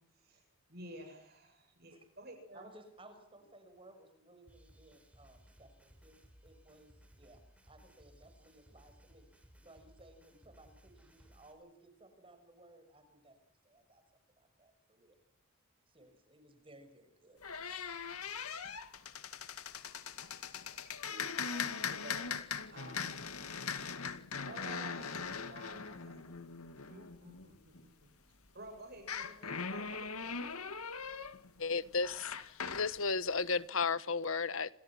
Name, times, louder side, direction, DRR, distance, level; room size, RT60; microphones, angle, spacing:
voice 1, 0.7-2.7 20.8-22.3 22.7-23.1 24.4-26.4 26.9-28.1 28.5-30.3, right 1 dB, 45° right, 7.8 m, -52 dB
voice 2, 2.5-6.1 6.4-14.0 14.4-15.2 15.9-17.4, right 1 dB, 25° right, 6.0 m, -60 dB
sound 1, 4.5-11.5, equal, 5° right, 4.6 m, -62 dB
sound 2, 17.4-27.8 29.0-33.0, left 6 dB, 85° left, 2.2 m, -41 dB
voice 3, 31.6-34.7, left 4 dB, 65° left, 1.3 m, -34 dB
29.5 x 27.5 x 6.1 m
head